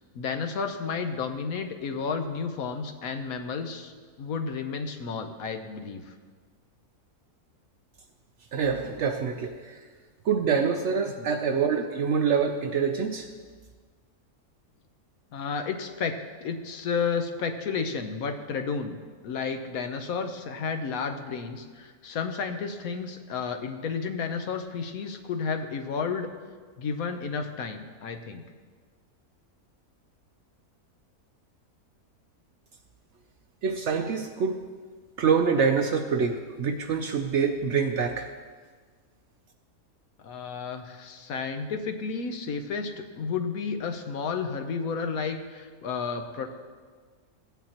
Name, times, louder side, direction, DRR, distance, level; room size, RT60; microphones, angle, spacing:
voice 1, 0.1-3.9 4.2-6.1 11.2-11.3 15.3-26.3 26.8-28.4 40.2-46.5, left 5 dB, 70° left, 7 dB, 1.2 m, -32 dB
voice 2, 8.5-9.8 10.2-13.3 33.6-34.6 35.2-38.3, right 6 dB, 65° right, 6 dB, 0.7 m, -26 dB
15.5 x 9.2 x 2.9 m, 1.6 s
omnidirectional pair, 1.6 m